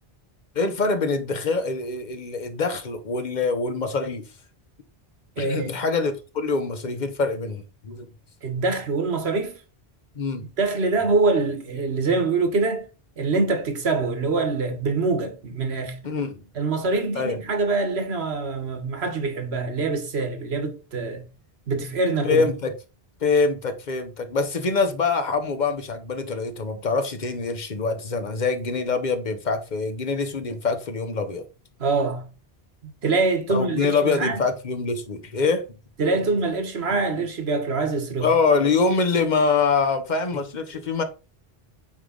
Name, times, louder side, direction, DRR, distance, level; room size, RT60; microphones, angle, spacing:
voice 1, 0.5-4.3 5.4-8.1 10.1-10.4 16.0-16.4 17.1-17.4 22.2-22.7 23.2-31.5 33.5-35.7 36.2-36.3 36.9-37.3 38.2-41.0, left 4 dB, 45° left, 1.0 m, -24 dB
voice 2, 5.4-5.7 8.4-9.5 10.6-12.9 13.2-16.0 16.5-21.3 21.7-22.5 31.8-32.2 32.8-34.4 36.0-38.3, right 3 dB, 90° right, 1.5 m, -24 dB
8.7 x 3.3 x 3.9 m
omnidirectional pair, 1.0 m